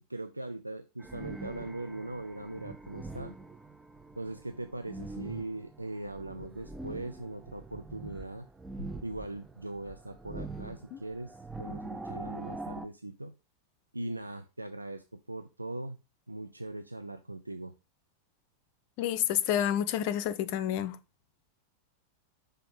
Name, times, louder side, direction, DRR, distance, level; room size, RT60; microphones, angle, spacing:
voice 1, 0.0-3.4 4.2-8.5 8.8-13.3 13.9-16.0 16.3-17.7, right 2 dB, 85° right, 0.4 m, -40 dB
sound 1, 1.0-12.9, right 2 dB, 10° right, 0.4 m, -44 dB
voice 2, 19.0-21.0, left 10 dB, 45° left, 0.5 m, -29 dB
5.9 x 3.4 x 4.9 m
figure-of-eight pair, 90°, 0 cm